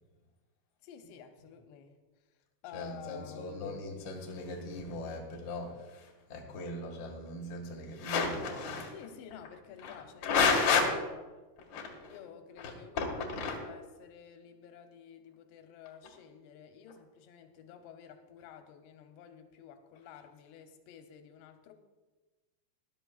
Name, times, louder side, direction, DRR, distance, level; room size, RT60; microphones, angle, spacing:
voice 1, 0.8-2.0 2.3-3.9 8.9-10.4 12.1-13.3 13.6-21.7, left 8 dB, 85° left, 6 dB, 3.0 m, -51 dB
voice 2, 2.7-8.9 9.8-10.9 11.7-12.2 12.6-13.6, left 4 dB, 45° left, 0 dB, 1.6 m, -33 dB
18.5 x 11.5 x 2.4 m, 1.2 s
omnidirectional pair, 4.8 m